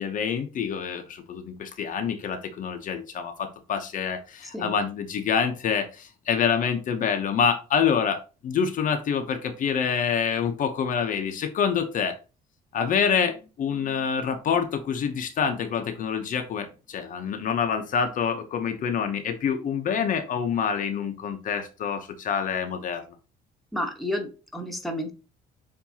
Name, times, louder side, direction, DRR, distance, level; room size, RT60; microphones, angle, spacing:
voice 1, 0.0-12.2 12.7-23.0, left 7 dB, 50° left, 0.7 m, -26 dB
voice 2, 23.7-25.1, left 1 dB, ahead, 1.1 m, -31 dB
7.0 x 2.6 x 2.8 m
cardioid pair, 110°, 17 cm